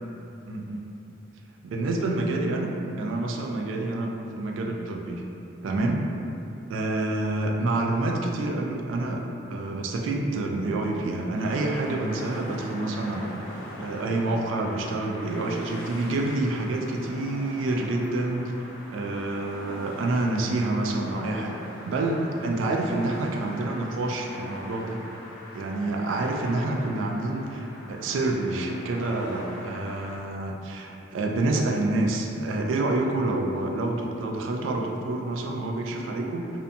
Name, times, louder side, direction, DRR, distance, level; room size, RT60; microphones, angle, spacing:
voice 1, 0.5-0.9 1.6-2.7 3.0-5.3 5.6-6.0 6.7-13.3 13.8-18.5 18.9-21.6 21.8-25.0 25.5-36.6, right 2 dB, 80° right, 1 dB, 0.3 m, -28 dB
sound 1, 11.3-30.2, left 1 dB, 80° left, 0.5 m, -42 dB
2.6 x 2.2 x 2.6 m, 2.8 s
head